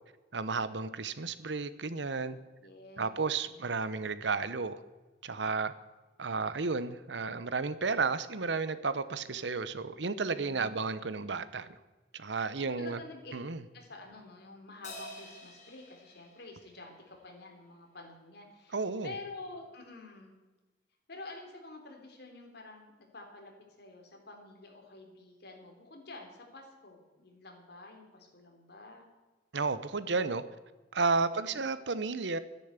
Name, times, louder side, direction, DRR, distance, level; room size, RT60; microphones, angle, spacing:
voice 1, 0.3-2.4 3.0-4.8 5.2-5.7 6.2-11.7 12.1-13.0 13.3-13.6 18.7-19.1 29.5-30.4 30.9-32.4, right 4 dB, 70° right, 14 dB, 0.9 m, -32 dB
voice 2, 2.6-3.7 10.2-11.4 12.6-13.3 13.7-20.4 21.1-29.1 31.4-31.6, left 2 dB, 65° left, 2 dB, 3.5 m, -49 dB
Crash cymbal, 14.8-17.5, left 1 dB, 45° left, 3.7 m, -49 dB
12.5 x 10.0 x 8.2 m, 1.2 s
head